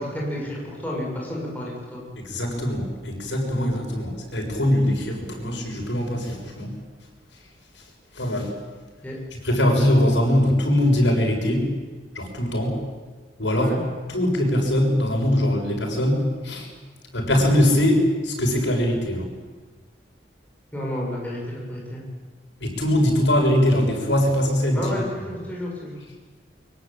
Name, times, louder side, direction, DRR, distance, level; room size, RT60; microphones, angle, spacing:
voice 1, 0.0-2.0 9.0-9.2 13.5-13.8 20.7-22.0 24.7-26.0, left 1 dB, 10° left, -4 dB, 7.1 m, -31 dB
voice 2, 2.3-6.7 8.2-8.5 9.4-11.7 12.2-12.8 13.4-13.7 14.1-16.7 17.1-19.3 22.6-24.9, left 1 dB, 85° left, 1 dB, 7.0 m, -21 dB
23.5 x 23.0 x 9.0 m, 1.4 s
head